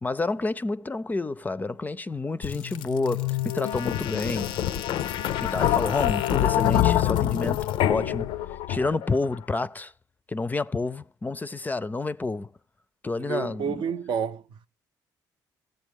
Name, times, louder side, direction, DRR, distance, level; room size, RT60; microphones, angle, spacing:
voice 1, 0.0-4.5 5.4-8.4 8.7-9.9 10.3-12.5 13.0-13.8, left 3 dB, 20° left, 0.4 m, -29 dB
sound 1, 2.4-9.2, left 12 dB, 80° left, 0.4 m, -26 dB
voice 2, 13.2-14.7, right 7 dB, 65° right, 0.6 m, -30 dB
14.5 x 8.0 x 3.5 m
supercardioid pair, 75°, 9 cm